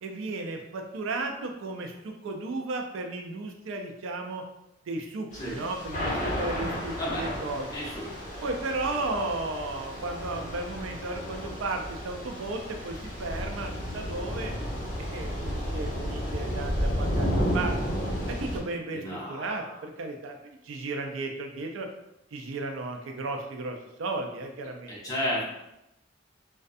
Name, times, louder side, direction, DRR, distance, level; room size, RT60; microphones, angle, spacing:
voice 1, 0.0-4.4 4.9-7.7 8.4-14.5 15.1-17.8 18.3-21.9 22.3-24.9, right 2 dB, 80° right, 3 dB, 0.4 m, -34 dB
Thunder / Rain, 5.3-18.6, equal, 45° left, 1.2 m, -32 dB
voice 2, 7.7-8.1 18.9-19.6 24.9-25.4, equal, 20° left, -7 dB, 0.8 m, -32 dB
2.5 x 2.2 x 2.4 m, 0.87 s
head